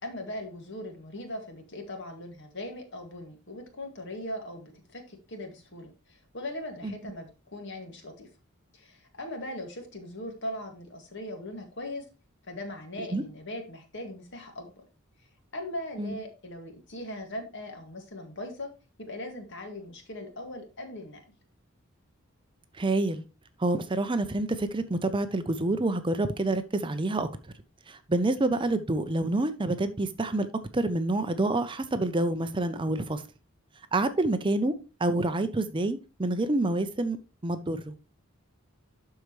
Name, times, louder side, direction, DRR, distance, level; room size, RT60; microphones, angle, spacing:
voice 1, 0.0-8.3 8.7-12.0 12.4-14.8 15.5-18.7 19.0-21.2, left 1 dB, 55° left, 4 dB, 2.0 m, -39 dB
voice 2, 22.8-23.2 23.6-27.3 27.9-30.5 30.7-33.2 33.9-34.7 35.0-37.2 37.4-37.9, right 2 dB, 20° right, 10 dB, 0.5 m, -27 dB
12.0 x 4.7 x 3.1 m, 0.31 s
head